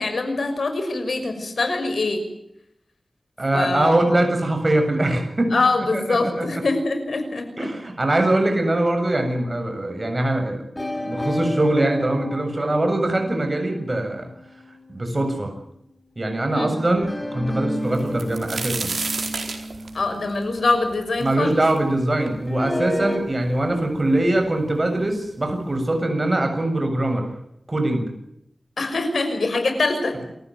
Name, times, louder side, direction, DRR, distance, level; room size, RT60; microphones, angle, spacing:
voice 1, 0.0-2.2 3.5-3.9 5.5-7.7 16.5-16.8 19.9-21.6 28.8-30.2, left 3 dB, 85° left, 7 dB, 5.9 m, -24 dB
voice 2, 3.4-5.6 5.9-6.6 7.6-10.6 11.0-14.3 14.9-15.5 16.2-18.9 21.2-27.3 27.7-28.1, right 1 dB, 35° right, 5 dB, 7.3 m, -22 dB
sound 1, 10.8-15.3 17.0-21.1 22.5-23.2, left 1 dB, 20° left, 6.0 m, -31 dB
sound 2, 17.9-21.8 22.3-22.4 23.1-23.2 23.5-24.1 25.0-25.1 25.5-25.7, right 4 dB, 85° right, 4.4 m, -30 dB
28.5 x 15.5 x 9.4 m, 0.78 s
wide cardioid pair, 80°, 0 cm